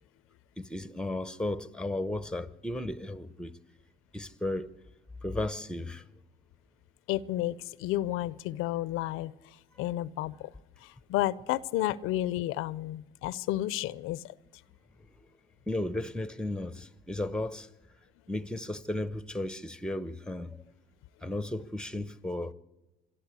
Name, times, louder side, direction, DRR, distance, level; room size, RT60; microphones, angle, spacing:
voice 1, 0.6-3.6 4.1-4.7 5.2-6.1 15.0-15.1 15.7-17.7 18.3-20.6 21.2-22.5, left 1 dB, 5° left, 0.9 m, -34 dB
voice 2, 7.1-10.5 10.8-14.3, left 14 dB, 85° left, 0.6 m, -32 dB
26.0 x 12.5 x 8.3 m
cardioid pair, 90°, 21 cm